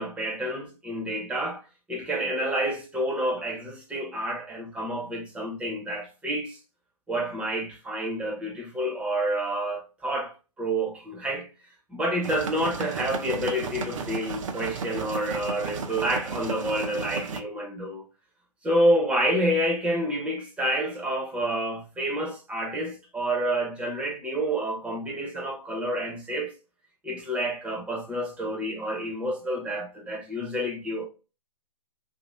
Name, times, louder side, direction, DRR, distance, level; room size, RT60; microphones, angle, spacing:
voice 1, 0.0-6.6 7.1-11.5 11.9-18.1 18.6-26.5 27.0-31.1, right 1 dB, 5° right, 0.7 m, -29 dB
sound 1, 12.2-17.4, right 5 dB, 50° right, 0.6 m, -34 dB
2.9 x 2.7 x 3.0 m
figure-of-eight pair, 130°, 20 cm